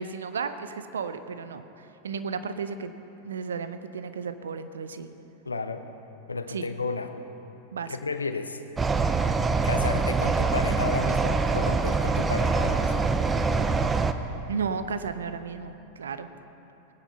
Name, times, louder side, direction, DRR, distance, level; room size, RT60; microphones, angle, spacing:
voice 1, 0.0-2.9 3.2-5.1 6.5-6.7 7.7-8.0 14.5-16.3, right 5 dB, 65° right, 11 dB, 0.8 m, -34 dB
voice 2, 5.4-5.9 6.3-7.1 7.9-8.6 9.6-12.9, left 4 dB, 80° left, 9 dB, 0.9 m, -32 dB
sound 1, 8.8-14.1, right 4 dB, 15° right, 0.7 m, -24 dB
20.5 x 10.0 x 5.6 m, 3.0 s
figure-of-eight pair, 90°, 0 cm